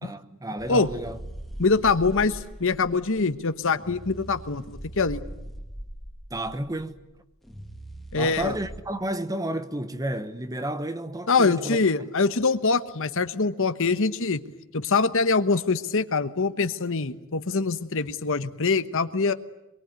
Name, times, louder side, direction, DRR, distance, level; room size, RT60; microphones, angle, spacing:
voice 1, 0.0-1.2 6.3-7.0 8.2-11.8, right 1 dB, 15° right, 1.1 m, -31 dB
sound 1, 0.6-8.8, right 1 dB, ahead, 1.9 m, -41 dB
voice 2, 1.6-5.2 8.1-8.5 11.3-14.4 14.7-19.3, left 4 dB, 65° left, 1.2 m, -24 dB
25.0 x 23.0 x 9.6 m
head